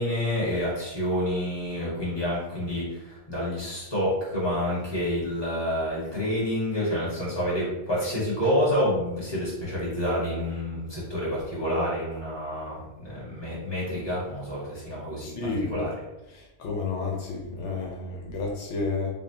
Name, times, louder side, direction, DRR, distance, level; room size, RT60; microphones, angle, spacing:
voice 1, 0.0-15.3 15.6-15.9, equal, 20° left, -8 dB, 1.6 m, -28 dB
voice 2, 15.2-15.8 16.3-19.1, left 3 dB, 80° left, -1 dB, 1.0 m, -31 dB
5.2 x 2.0 x 2.8 m, 0.95 s
omnidirectional pair, 1.2 m